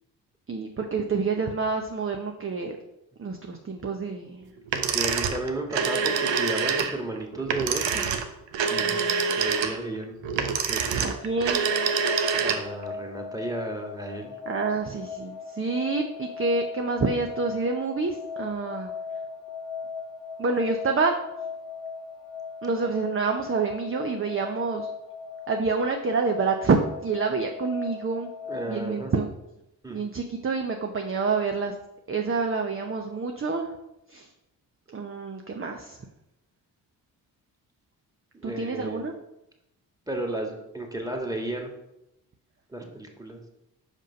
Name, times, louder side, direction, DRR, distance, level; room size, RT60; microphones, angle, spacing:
voice 1, 0.5-2.8 3.2-4.5 8.8-9.4 11.0-11.6 14.5-18.9 20.4-21.1 22.6-24.9 25.5-28.3 28.7-29.3 29.9-31.7 32.1-33.7 34.1-34.3 34.9-36.0 38.4-39.1, right 4 dB, 30° right, 4 dB, 0.8 m, -27 dB
sound 1, 4.7-12.8, right 6 dB, 70° right, 0.9 m, -26 dB
voice 2, 4.8-8.1 8.7-10.3 10.7-11.0 12.3-14.3 28.5-29.1 29.8-30.0 38.3-39.1 40.1-41.7 42.7-43.4, right 1 dB, 10° right, 1 dB, 1.9 m, -33 dB
sound 2, 10.7-28.8, left 5 dB, 70° left, 1.1 m, -39 dB
5.2 x 5.2 x 5.2 m, 0.87 s
supercardioid pair, 50°, 46 cm